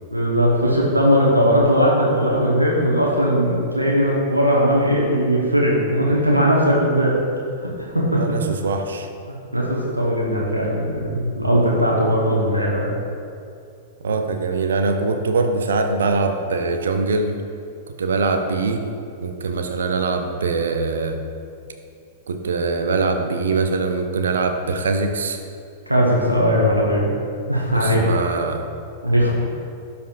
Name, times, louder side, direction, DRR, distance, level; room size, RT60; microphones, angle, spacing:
voice 1, 0.1-7.2 7.6-8.2 9.3-12.9 25.9-27.2 27.5-28.0 29.0-29.3, equal, 90° right, -4 dB, 1.0 m, -19 dB
voice 2, 8.2-9.1 14.0-17.4 18.0-18.9 19.2-21.2 22.3-25.4 27.7-28.6, right 3 dB, 70° right, 6 dB, 0.5 m, -22 dB
12.0 x 4.3 x 2.5 m, 2.5 s
figure-of-eight pair, 95°, 0 cm